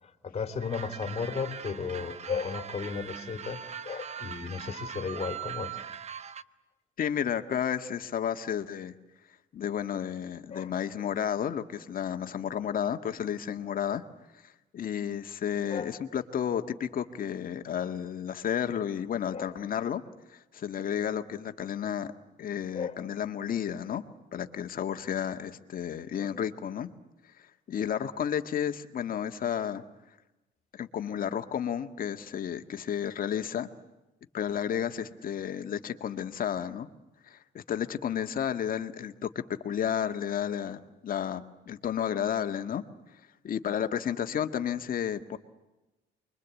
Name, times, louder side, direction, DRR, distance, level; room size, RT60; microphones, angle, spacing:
voice 1, 0.0-5.8 10.5-10.7 15.7-15.9 19.3-19.5 22.7-23.0, left 5 dB, 35° left, 8 dB, 3.1 m, -35 dB
sound 1, 0.6-6.4, right 8 dB, 35° right, 1.0 m, -41 dB
voice 2, 7.0-8.9 9.5-14.0 14.7-20.0 20.3-22.1 22.4-24.0 24.3-26.9 27.7-29.8 30.7-33.7 34.3-36.9 37.3-42.8 43.4-45.4, left 9 dB, 50° left, 7 dB, 1.8 m, -32 dB
29.5 x 23.5 x 8.4 m, 1.0 s
cardioid pair, 125°, 19 cm